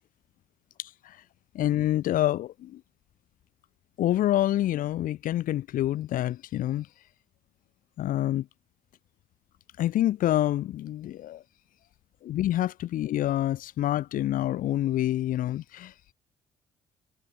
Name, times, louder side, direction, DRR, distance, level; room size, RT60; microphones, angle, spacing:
voice 1, 0.8-1.2 1.5-2.8 4.0-6.9 8.0-8.5 9.8-11.4 12.2-16.1, left 13 dB, 75° left, 3.1 m, -27 dB
cardioid pair, 110°, 14 cm